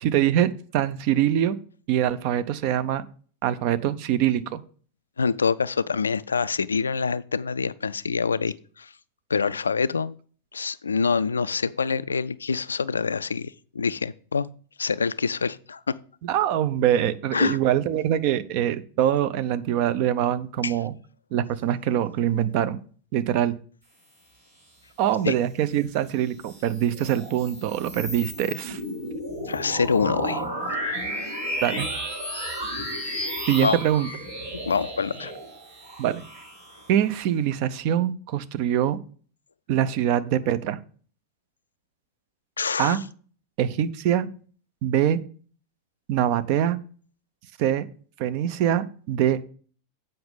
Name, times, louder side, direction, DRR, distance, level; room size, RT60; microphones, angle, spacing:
voice 1, 0.0-1.6 1.9-3.0 3.4-4.6 16.2-20.9 21.3-22.8 23.1-23.6 25.0-28.8 31.6-31.9 33.5-34.1 36.0-36.2 36.9-39.0 39.7-40.8 42.8-43.0 43.6-44.3 44.8-45.2 46.1-46.8 47.6-47.9 48.2-49.4, right 11 dB, 45° right, 0.6 m, -24 dB
voice 2, 5.2-8.9 9.3-10.2 10.5-14.5 14.8-15.9 17.3-17.6 20.6-20.8 25.2-25.3 29.4-30.4 31.0-31.2 33.6-33.8 34.7-35.3 42.6-43.0, left 5 dB, 75° left, 0.3 m, -26 dB
sound 1, 26.2-37.1, equal, 75° right, 4.9 m, -33 dB
7.8 x 5.4 x 5.3 m
figure-of-eight pair, 90°, 0 cm